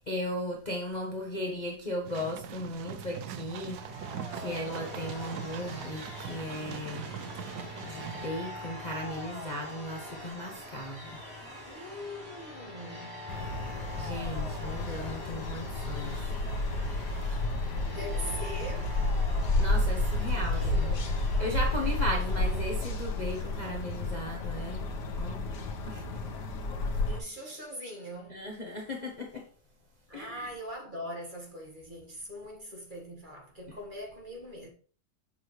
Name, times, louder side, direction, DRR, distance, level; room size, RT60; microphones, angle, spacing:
voice 1, 0.1-4.1 4.3-7.1 7.4-7.6 7.8-11.1 13.9-16.3 17.3-17.4 19.6-20.9 21.4-24.8 25.1-25.4 25.9-26.1 28.3-29.4 30.1-30.5, left 1 dB, 30° left, 0.9 m, -36 dB
sound 1, 2.0-8.3, right 9 dB, 70° right, 1.1 m, -41 dB
sound 2, 3.3-22.8, left 1 dB, 5° right, 3.6 m, -44 dB
voice 2, 11.6-13.3 17.9-18.9 20.2-21.1 27.1-28.4 30.1-34.7, equal, 30° right, 1.7 m, -42 dB
sound 3, 13.3-27.2, left 2 dB, 90° left, 1.6 m, -31 dB
7.1 x 6.6 x 3.2 m
omnidirectional pair, 1.8 m